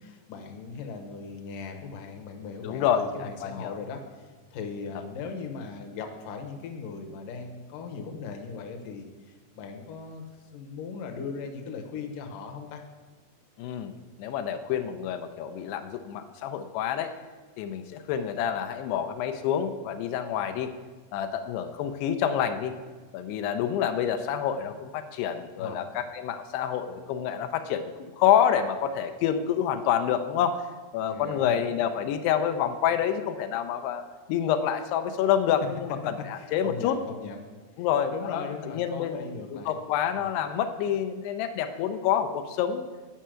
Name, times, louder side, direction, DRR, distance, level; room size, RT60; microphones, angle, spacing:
voice 1, 0.0-10.2 10.5-12.8 25.6-25.8 31.1-31.7 36.2-37.5 38.1-39.7 40.2-40.3, left 5 dB, 70° left, 4 dB, 2.3 m, -38 dB
voice 2, 2.6-3.8 13.6-17.1 17.6-20.7 21.1-22.7 23.1-30.7 30.9-37.0 37.8-42.8, left 9 dB, 85° left, 7 dB, 2.7 m, -28 dB
10.0 x 5.6 x 7.5 m, 1.4 s
omnidirectional pair, 4.6 m